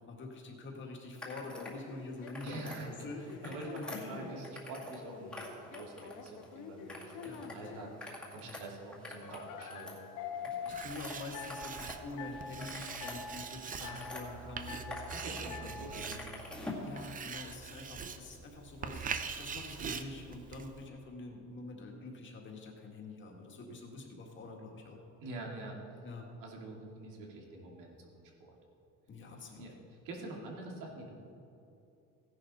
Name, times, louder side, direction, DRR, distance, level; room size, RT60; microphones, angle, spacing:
voice 1, 0.0-4.5 7.2-7.9 8.4-8.6 10.4-15.5 15.9-16.0 16.8-25.0 26.0-26.3 29.1-29.7, left 2 dB, 40° left, 1 dB, 1.9 m, -46 dB
sound 1, 1.2-1.8 2.1-2.8 3.3-5.0 5.3-6.5 6.9-7.6 7.9-12.0 12.3-14.2 14.7-15.4 15.7-16.9, left 2 dB, 5° left, 2.0 m, -46 dB
sound 2, 1.5-4.5 5.0-8.0 9.2-10.9 11.3-11.8 12.2-12.7 13.0-13.5 13.8-14.4 14.7-15.1 15.5-16.0, left 6 dB, 85° left, 1.2 m, -45 dB
voice 2, 2.4-2.9 3.4-10.1 13.8-14.5 15.1-16.7 25.2-25.8 26.4-28.1 29.5-29.7 30.0-31.2, right 2 dB, 85° right, -1 dB, 2.5 m, -46 dB
Writing, 10.7-20.9, right 6 dB, 25° right, 0.6 m, -43 dB
16.0 x 10.5 x 4.2 m, 2.8 s
cardioid pair, 160°, 31 cm